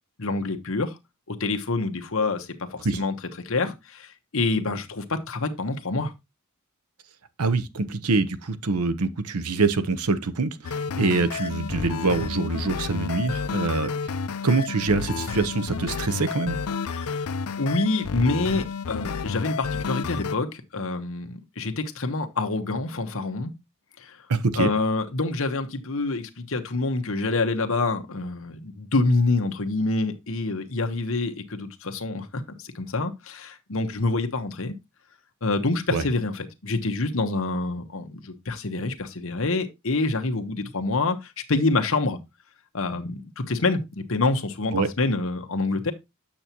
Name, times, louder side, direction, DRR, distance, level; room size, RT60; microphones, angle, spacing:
voice 1, 0.2-1.0 1.3-3.1 3.4-6.1 16.9-23.6 24.0-24.3 24.6-34.7 35.4-42.2 42.7-45.9, left 3 dB, 65° left, 1.1 m, -27 dB
voice 2, 7.4-14.1 14.4-16.6 24.3-24.7 35.9-36.0 44.7-44.9, right 3 dB, 85° right, 0.8 m, -25 dB
sound 1, 10.6-20.4, left 5 dB, 85° left, 0.6 m, -31 dB
8.7 x 6.8 x 2.9 m
head